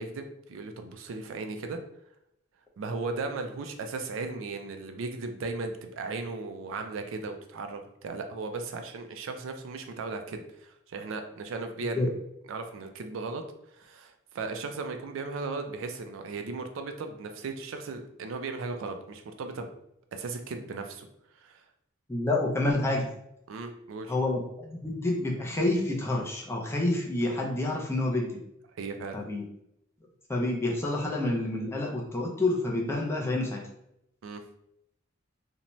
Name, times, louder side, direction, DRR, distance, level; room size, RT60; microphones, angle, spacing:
voice 1, 0.0-1.8 2.8-12.2 12.5-13.4 13.7-19.7 20.1-21.1 21.4-21.6 23.5-24.1 28.8-29.2 34.2-34.4, right 3 dB, 80° right, 6 dB, 0.4 m, -36 dB
voice 2, 22.1-23.1 24.1-28.4 29.1-29.4 30.3-33.6, left 2 dB, 15° left, -2 dB, 0.4 m, -28 dB
2.6 x 2.1 x 2.9 m, 0.78 s
head